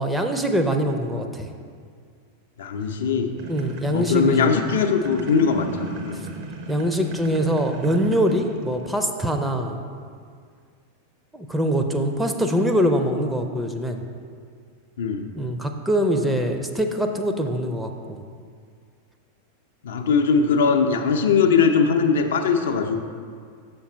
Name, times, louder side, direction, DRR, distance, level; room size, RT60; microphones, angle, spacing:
voice 1, 0.0-1.5 3.5-4.6 6.7-9.8 11.3-14.0 15.4-18.2, equal, 5° right, 4 dB, 0.5 m, -23 dB
voice 2, 2.6-3.3 3.9-6.2 15.0-15.3 19.8-23.0, left 5 dB, 60° left, 5 dB, 0.5 m, -20 dB
sound 1, 3.4-9.0, right 2 dB, 45° right, 0.7 m, -36 dB
7.1 x 5.1 x 4.3 m, 2.1 s
figure-of-eight pair, 90°, 0 cm